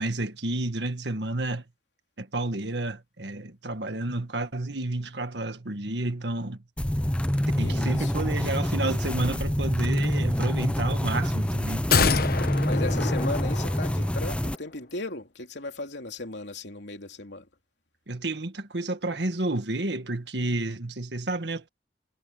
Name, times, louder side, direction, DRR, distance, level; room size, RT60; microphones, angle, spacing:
voice 1, 0.0-1.6 2.2-6.6 7.6-12.3 12.6-12.8 18.1-21.7, right 2 dB, 70° right, 1.7 m, -31 dB
sound 1, 6.8-14.6, equal, 5° left, 0.7 m, -26 dB
voice 2, 7.6-8.1 11.9-12.3 12.6-17.4, left 2 dB, 75° left, 3.2 m, -36 dB
sound 2, 11.9-14.3 14.6-14.7, left 5 dB, 55° left, 1.0 m, -27 dB
head